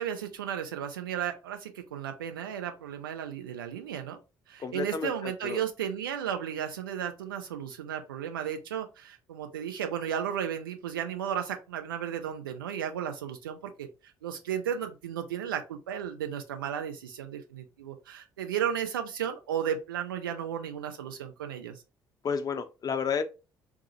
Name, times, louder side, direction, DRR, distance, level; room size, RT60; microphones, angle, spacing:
voice 1, 0.0-4.2 4.5-13.9 14.2-21.8, right 9 dB, 80° right, 0.4 m, -34 dB
voice 2, 4.6-5.6 22.2-23.2, left 6 dB, 35° left, 0.5 m, -31 dB
3.5 x 2.0 x 2.9 m
figure-of-eight pair, 45°, 11 cm